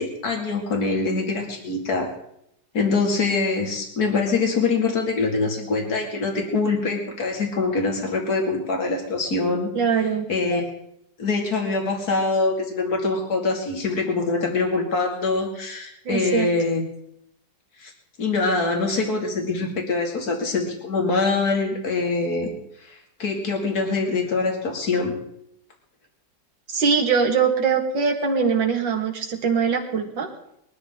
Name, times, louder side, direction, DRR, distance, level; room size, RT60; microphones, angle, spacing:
voice 1, 0.0-2.1 2.7-9.7 10.3-10.7 11.2-16.8 17.8-17.9 18.2-22.5 22.9-25.1, left 3 dB, 55° left, 1 dB, 3.1 m, -24 dB
voice 2, 9.7-10.3 16.1-16.5 26.7-30.3, right 6 dB, 75° right, 2 dB, 2.7 m, -22 dB
22.0 x 13.0 x 3.8 m, 0.75 s
omnidirectional pair, 2.0 m